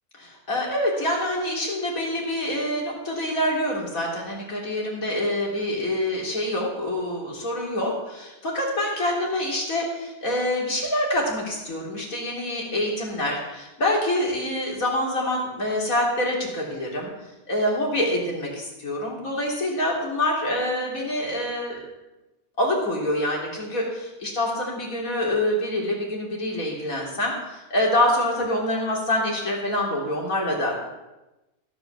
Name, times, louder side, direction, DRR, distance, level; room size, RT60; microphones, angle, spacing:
voice 1, 0.1-17.1 17.5-21.8 22.6-30.9, left 1 dB, 65° left, -2 dB, 4.0 m, -26 dB
16.0 x 9.0 x 6.9 m, 1.0 s
omnidirectional pair, 1.5 m